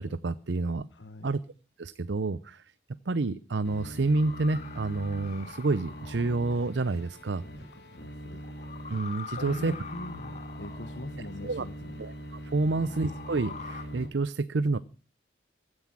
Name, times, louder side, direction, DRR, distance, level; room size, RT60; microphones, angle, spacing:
voice 1, 0.0-0.9 1.2-1.4 1.8-2.6 3.1-7.4 8.9-9.7 11.4-11.6 12.0-12.1 12.5-14.8, right 3 dB, 80° right, 16 dB, 0.7 m, -28 dB
voice 2, 0.9-1.3 7.7-8.4 9.2-12.0, left 2 dB, 85° left, 8 dB, 1.2 m, -43 dB
sound 1, 3.6-14.1, equal, 65° left, 4.6 m, -43 dB
sound 2, 4.1-6.7 8.4-11.1 12.7-13.8, left 5 dB, 40° left, 1.4 m, -44 dB
16.0 x 9.7 x 7.5 m, 0.38 s
head